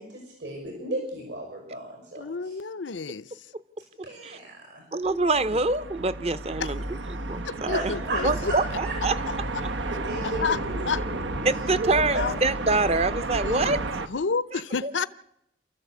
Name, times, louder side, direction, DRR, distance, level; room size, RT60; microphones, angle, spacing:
voice 1, 0.0-2.6 4.0-4.8 7.7-9.0 9.5-12.2, right 1 dB, 70° right, 6.3 m, -35 dB
voice 2, 2.2-3.4 5.0-5.6 6.6-6.7 7.4-8.5 9.0-9.1 9.5-9.6 10.2-10.6 10.8-11.0 12.1-12.4 13.4-13.8 14.1-15.1, left 5 dB, 85° left, 0.7 m, -30 dB
voice 3, 4.9-6.8 7.1-7.9 8.2-9.2 9.6-9.7 11.4-13.8 14.5-14.9, right 3 dB, 35° right, 0.8 m, -26 dB
sound 1, 5.0-14.1, right 2 dB, 90° right, 1.2 m, -32 dB
28.0 x 14.0 x 8.3 m
head